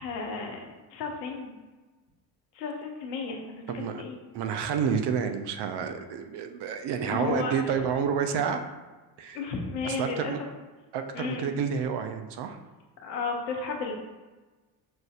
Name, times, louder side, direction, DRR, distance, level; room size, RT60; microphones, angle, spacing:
voice 1, 0.0-1.5 2.5-4.2 7.1-7.5 9.3-10.5 11.1-11.5 13.0-13.9, left 4 dB, 85° left, 1 dB, 0.8 m, -33 dB
voice 2, 3.7-4.0 4.3-8.6 9.2-9.4 9.8-10.4 10.9-12.6, right 7 dB, 55° right, 7 dB, 0.6 m, -29 dB
6.0 x 2.5 x 2.4 m, 1.2 s
hypercardioid pair, 55°, 49 cm